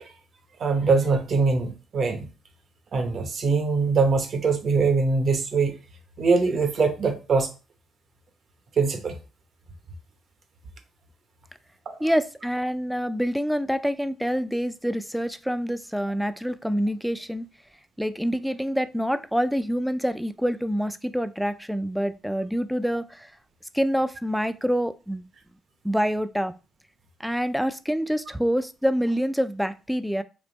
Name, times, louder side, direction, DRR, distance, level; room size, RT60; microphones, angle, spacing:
voice 1, 0.6-2.3 2.9-5.7 6.2-7.5 8.8-9.2 11.9-12.0, right 4 dB, 55° right, 6 dB, 0.9 m, -22 dB
voice 2, 12.0-17.5 18.0-23.3 23.7-25.2 25.8-26.5 27.2-30.2, equal, ahead, 12 dB, 0.3 m, -26 dB
3.4 x 2.8 x 3.9 m, 0.32 s
cardioid pair, 90°, 0 cm